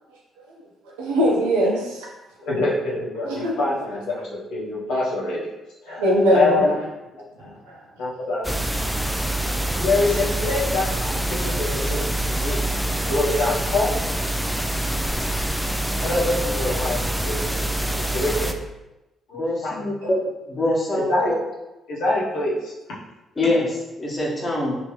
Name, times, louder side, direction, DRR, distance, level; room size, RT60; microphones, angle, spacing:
voice 1, 0.8-2.1 3.2-3.5 5.9-6.7 7.4-7.7 9.4-10.0, equal, 90° right, -3 dB, 0.7 m, -22 dB
voice 2, 2.5-5.5 5.9-6.0 6.3-6.7 7.4-7.5 8.0-8.9 9.7-12.0 12.4-12.6 12.9-13.9 16.0-17.6 17.9-18.6 19.3-20.1 20.9-21.3 21.9-22.7, left 2 dB, 75° left, -5 dB, 0.9 m, -25 dB
sound 1, 8.4-18.5, right 1 dB, ahead, 0.4 m, -25 dB
voice 3, 19.4-20.2 20.5-21.4 23.4-24.8, left 1 dB, 30° left, -5 dB, 1.2 m, -24 dB
3.2 x 2.8 x 3.1 m, 1.0 s
hypercardioid pair, 50°, 0 cm